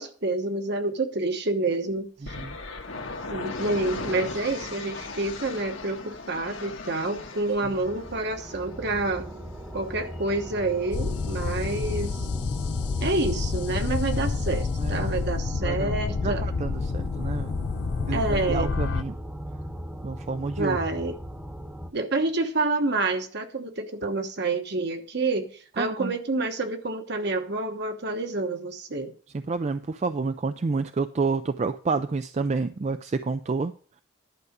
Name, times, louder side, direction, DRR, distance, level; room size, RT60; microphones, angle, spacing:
voice 1, 0.0-2.4 3.3-9.3 9.7-12.3 13.0-16.4 18.1-18.7 20.6-21.2 21.9-29.1, right 2 dB, 55° right, 6 dB, 1.2 m, -28 dB
sound 1, 2.2-12.1, left 3 dB, 75° left, 1.5 m, -39 dB
sound 2, 7.6-21.9, equal, 5° right, 0.9 m, -38 dB
sound 3, 10.9-19.0, left 4 dB, 60° left, 0.5 m, -29 dB
voice 2, 14.8-15.2 15.6-17.5 18.0-19.1 20.0-20.8 25.8-26.1 29.5-33.7, right 4 dB, 35° right, 10 dB, 0.4 m, -29 dB
11.0 x 4.8 x 6.7 m, 0.42 s
head